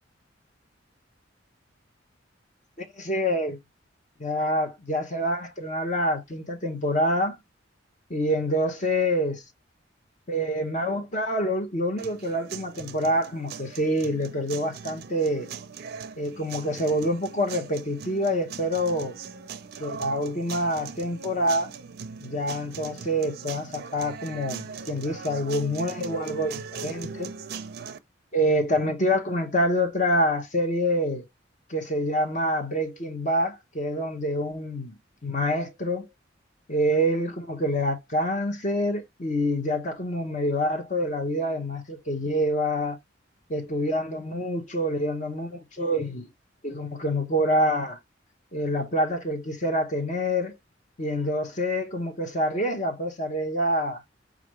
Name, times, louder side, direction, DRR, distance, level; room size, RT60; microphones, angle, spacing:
voice 1, 2.8-3.6 4.2-7.4 8.1-9.4 10.3-15.5 16.2-19.2 19.8-21.7 22.2-27.3 28.3-31.3 31.7-34.9 35.2-36.1 36.7-43.0 43.5-46.3 46.6-48.0 48.5-50.6 51.0-54.0, equal, 40° left, 0.9 m, -26 dB
sound 1, 12.0-28.0, right 6 dB, 55° right, 0.4 m, -40 dB
4.9 x 2.4 x 3.1 m
head